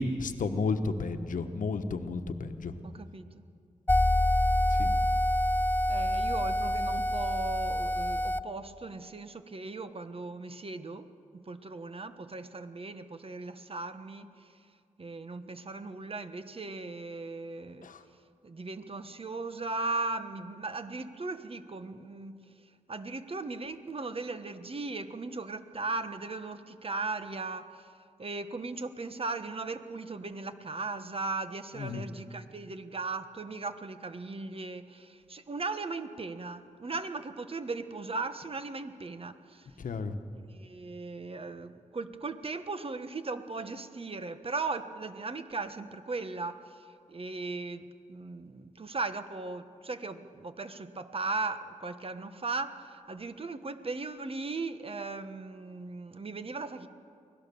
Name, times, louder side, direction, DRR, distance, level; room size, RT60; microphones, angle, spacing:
voice 1, 0.0-2.8 4.7-4.9 17.8-18.0 31.7-32.1 39.8-40.1, left 3 dB, 80° left, 9 dB, 1.2 m, -32 dB
voice 2, 2.8-3.4 5.9-11.1 11.3-14.5 15.0-17.9 18.4-22.4 22.9-27.9 28.2-39.7 40.3-56.9, right 3 dB, 45° right, 10 dB, 1.3 m, -38 dB
sound 1, 3.9-8.4, left 1 dB, 15° left, 0.5 m, -26 dB
24.0 x 17.0 x 7.0 m, 2.3 s
cardioid pair, 60°, 13 cm